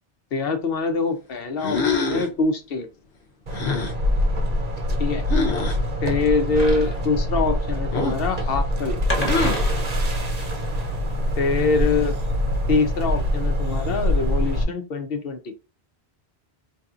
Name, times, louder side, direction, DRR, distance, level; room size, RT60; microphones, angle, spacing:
voice 1, 0.3-2.9 5.0-5.2 6.0-9.2 11.4-12.2 12.7-15.5, left 4 dB, 65° left, 7 dB, 0.9 m, -24 dB
sound 1, 1.6-2.4 3.5-4.0 5.3-5.8 7.9-8.3 9.2-9.7, left 4 dB, 85° left, 1.1 m, -25 dB
sound 2, 3.5-14.6, equal, 45° right, 0.7 m, -24 dB
sound 3, 6.5-11.5, equal, 10° left, 1.1 m, -33 dB
4.4 x 2.7 x 2.4 m, 0.31 s
omnidirectional pair, 1.1 m